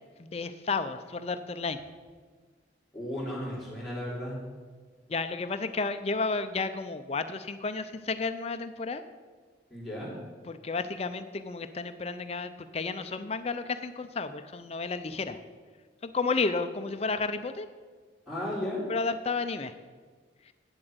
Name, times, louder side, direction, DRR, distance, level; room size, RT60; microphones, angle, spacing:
voice 1, 0.2-1.8 5.1-9.0 10.5-15.4 16.0-17.7 18.9-19.7, left 4 dB, 35° left, 10 dB, 0.5 m, -32 dB
voice 2, 2.9-4.4 9.7-10.1 18.3-18.8, left 1 dB, ahead, -8 dB, 3.5 m, -34 dB
8.9 x 7.7 x 7.8 m, 1.5 s
head